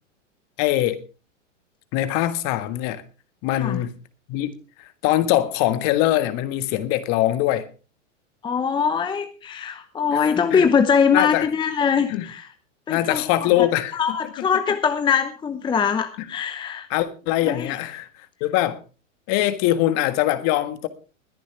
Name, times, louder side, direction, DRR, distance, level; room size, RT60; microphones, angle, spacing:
voice 1, 0.6-1.0 1.9-3.0 3.4-3.9 4.3-4.5 5.0-7.7 10.1-10.6 11.1-11.5 12.1-12.3 12.9-14.0 16.9-18.1 18.4-18.8 19.3-20.9, left 14 dB, 45° left, 1.6 m, -22 dB
voice 2, 8.4-12.5 12.9-13.5 13.9-16.9 17.5-17.8, left 6 dB, 10° left, 0.8 m, -22 dB
21.0 x 10.0 x 3.3 m
hypercardioid pair, 110°, 38 cm